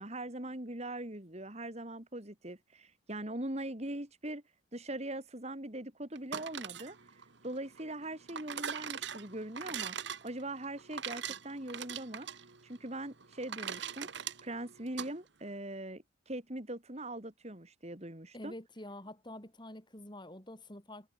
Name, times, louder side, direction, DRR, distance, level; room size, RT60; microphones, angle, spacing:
voice 1, 0.0-4.4 4.7-10.0 10.2-12.3 12.6-18.5, right 1 dB, 30° right, 2.6 m, -41 dB
sound 1, 6.2-15.1, right 8 dB, 60° right, 1.4 m, -42 dB
voice 2, 18.3-21.1, left 1 dB, 20° left, 5.4 m, -47 dB
head